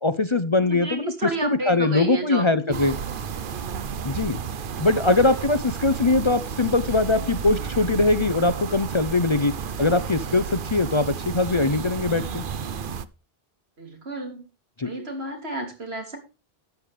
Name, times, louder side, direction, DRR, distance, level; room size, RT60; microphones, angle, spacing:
voice 1, 0.0-1.1 1.4-3.0 4.0-4.4 4.8-9.5 9.8-12.4 14.8-14.9, left 2 dB, 35° left, 13 dB, 0.6 m, -22 dB
voice 2, 0.6-2.8 13.8-14.4 14.8-16.2, right 2 dB, 80° right, 4 dB, 3.0 m, -31 dB
sound 1, 2.7-13.0, right 7 dB, 60° right, 0.9 m, -32 dB
12.5 x 9.5 x 3.3 m, 0.30 s
omnidirectional pair, 1.0 m